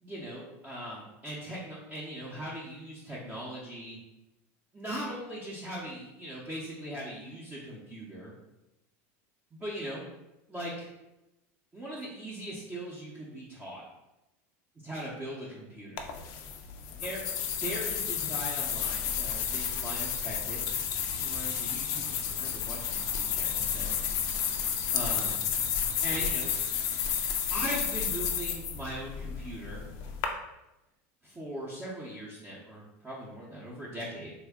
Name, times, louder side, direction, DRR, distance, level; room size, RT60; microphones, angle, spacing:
voice 1, 0.0-4.0 4.7-8.3 9.5-10.0 10.5-10.9 11.7-13.8 14.8-16.1 17.0-20.8 21.2-24.0 24.9-25.4 26.0-26.5 27.5-29.8 31.2-34.3, right 1 dB, 15° right, -7 dB, 0.7 m, -40 dB
sound 1, 16.0-30.3, left 8 dB, 50° left, 0.4 m, -31 dB
3.3 x 2.1 x 3.5 m, 0.94 s
supercardioid pair, 140°, 7 cm